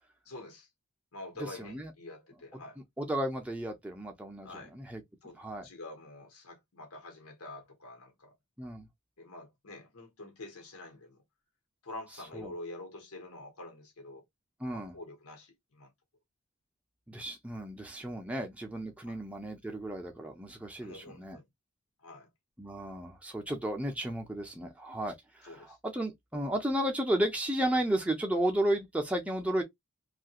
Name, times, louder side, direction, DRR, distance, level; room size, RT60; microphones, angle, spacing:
voice 1, 0.2-0.7 1.1-2.8 4.4-8.3 9.2-11.2 11.8-14.2 14.7-15.9 19.0-19.2 20.8-21.5 22.0-22.3 25.4-25.8, left 2 dB, 90° left, 1.1 m, -47 dB
voice 2, 1.6-1.9 3.0-5.0 5.4-5.6 8.6-8.9 12.3-12.5 14.6-14.9 17.1-21.4 22.6-25.5 25.8-29.6, right 1 dB, 5° right, 0.6 m, -33 dB
2.8 x 2.4 x 2.8 m
head